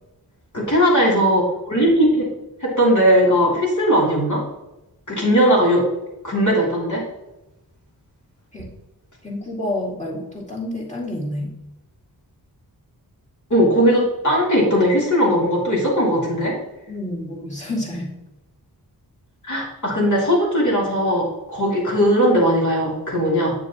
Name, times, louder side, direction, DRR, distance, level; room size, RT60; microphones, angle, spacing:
voice 1, 0.5-2.3 2.6-4.4 5.1-5.8 6.2-7.0 13.5-16.5 19.4-23.5, equal, 50° left, -4 dB, 3.1 m, -18 dB
voice 2, 9.2-11.5 16.9-18.1, left 1 dB, 20° left, -5 dB, 2.3 m, -29 dB
8.6 x 7.1 x 3.0 m, 0.96 s
wide cardioid pair, 90°, 38 cm